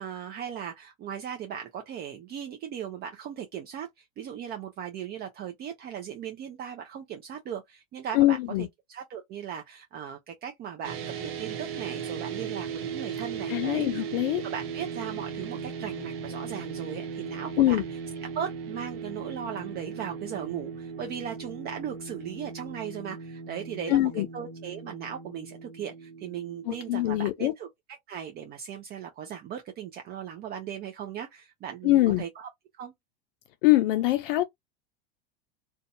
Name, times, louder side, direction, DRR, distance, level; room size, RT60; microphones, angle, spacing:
voice 1, 0.0-13.9 14.4-17.8 18.3-27.7 28.1-32.5 32.8-32.9, right 8 dB, 35° right, 0.5 m, -38 dB
voice 2, 8.1-8.7 13.5-14.4 17.6-17.8 23.9-24.3 26.7-27.5 31.8-32.2 33.6-34.4, left 16 dB, 70° left, 0.5 m, -23 dB
sound 1, 10.8-27.2, right 6 dB, 75° right, 0.9 m, -38 dB
2.6 x 2.2 x 2.6 m
hypercardioid pair, 115°, 29 cm